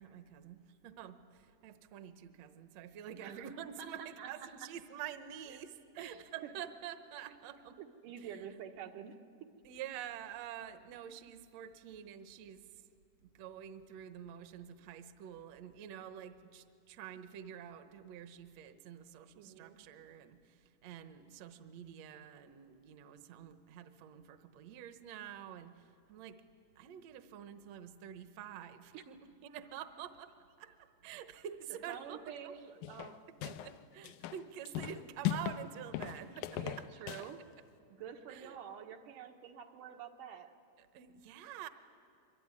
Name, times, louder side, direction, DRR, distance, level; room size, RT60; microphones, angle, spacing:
voice 1, 0.0-7.8 8.2-8.4 9.7-12.8 13.2-26.4 26.8-29.2 29.4-32.5 33.4-36.6 38.3-38.6 40.8-41.7, right 9 dB, 65° right, 10 dB, 1.9 m, -48 dB
voice 2, 3.8-4.7 5.5-5.6 6.0-6.6 7.8-9.5 19.4-19.8 28.9-29.0 31.9-33.6 36.5-37.4 37.9-40.6, right 8 dB, 80° right, 4 dB, 2.9 m, -48 dB
sound 1, 32.8-33.8 34.0-35.6 35.9-37.3, left 12 dB, 75° left, 2.2 m, -38 dB
25.5 x 23.0 x 9.7 m, 2.3 s
omnidirectional pair, 3.7 m